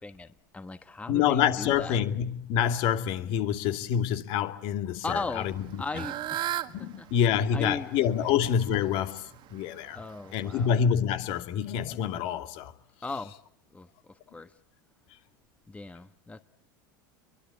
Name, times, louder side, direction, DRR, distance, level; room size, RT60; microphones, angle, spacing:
voice 1, 0.0-2.0 5.0-5.5 5.8-6.4 6.8-7.9 8.2-8.3 9.9-10.7 13.0-13.3 13.7-14.5 15.7-16.4, left 3 dB, 10° left, 1.3 m, -38 dB
voice 2, 1.1-5.8 6.7-9.2 9.5-10.0 10.3-12.7, left 8 dB, 60° left, 2.5 m, -27 dB
Fowl / Bird, 5.4-10.7, right 12 dB, 45° right, 1.7 m, -38 dB
26.5 x 23.5 x 8.5 m
hypercardioid pair, 90°, 11 cm